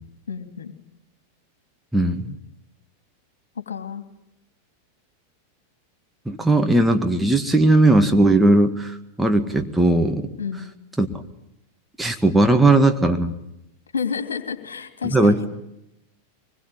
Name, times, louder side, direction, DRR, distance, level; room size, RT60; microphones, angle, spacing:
voice 1, 0.3-0.8 3.7-4.0 10.4-10.7 13.9-15.5, left 6 dB, 65° left, 7 dB, 3.0 m, -30 dB
voice 2, 1.9-2.4 6.3-10.3 11.0-11.1 12.0-13.4 15.1-15.5, right 2 dB, 5° right, 4 dB, 2.0 m, -18 dB
24.5 x 21.0 x 9.9 m, 0.84 s
figure-of-eight pair, 90°, 0 cm